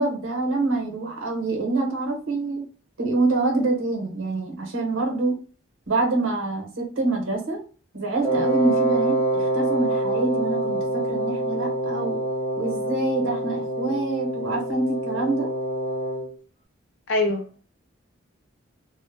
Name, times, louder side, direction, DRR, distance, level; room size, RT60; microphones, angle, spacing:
voice 1, 0.0-2.6 3.0-5.4 5.9-7.6 7.9-12.2 12.6-15.5, right 3 dB, 75° right, 0.8 m, -26 dB
Wind instrument woodwind instrument, 8.2-16.3, right 1 dB, 20° left, 0.6 m, -26 dB
voice 2, 17.1-17.6, left 2 dB, 65° left, 0.5 m, -24 dB
2.0 x 2.0 x 3.1 m
head